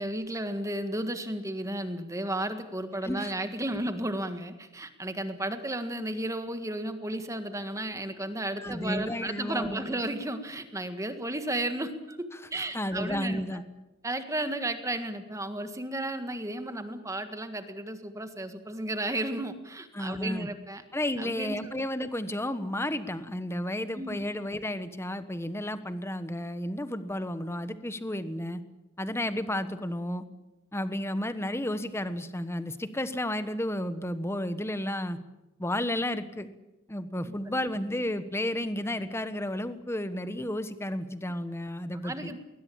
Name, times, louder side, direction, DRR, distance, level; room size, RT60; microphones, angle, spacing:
voice 1, 0.0-13.6 14.0-20.8 21.2-21.7 23.9-24.3 42.0-42.4, right 1 dB, 15° right, 8 dB, 1.7 m, -33 dB
voice 2, 8.6-9.9 12.6-13.6 19.9-20.5 20.9-28.6 29.0-30.2 30.7-35.2 35.6-36.5 36.9-42.3, left 1 dB, 15° left, 12 dB, 1.3 m, -32 dB
21.0 x 20.0 x 8.7 m, 0.98 s
head